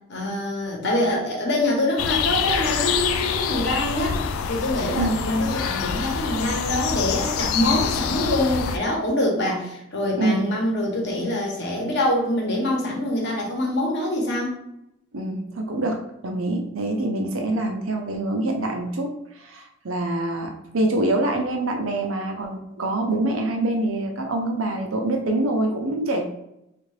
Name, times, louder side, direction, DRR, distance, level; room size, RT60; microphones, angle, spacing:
voice 1, 0.1-4.2 4.5-14.6, left 1 dB, 50° left, -1 dB, 0.9 m, -25 dB
sound 1, 2.0-8.8, left 7 dB, 75° left, 0.3 m, -26 dB
voice 2, 15.1-26.2, right 2 dB, 75° right, 3 dB, 0.6 m, -25 dB
3.5 x 2.5 x 3.2 m, 0.85 s
head